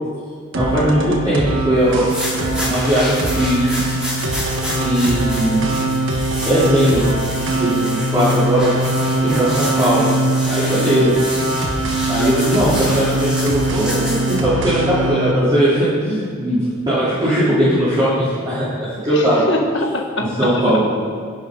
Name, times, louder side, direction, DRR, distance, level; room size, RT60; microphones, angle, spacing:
voice 1, 0.5-2.1 2.4-3.8 4.8-5.6 6.4-7.1 7.5-8.7 9.3-10.1 10.5-11.1 11.6-11.7 12.1-16.6 16.9-19.5 20.4-20.8, equal, 20° right, -13 dB, 3.5 m, -18 dB
sound 1, 0.5-15.3, right 1 dB, 60° right, 1.4 m, -22 dB
sound 2, 1.9-14.4, left 1 dB, 5° right, 3.5 m, -30 dB
voice 2, 9.3-9.7 19.1-20.8, left 1 dB, 55° left, 1 dB, 1.6 m, -24 dB
17.5 x 10.5 x 3.9 m, 2.3 s
head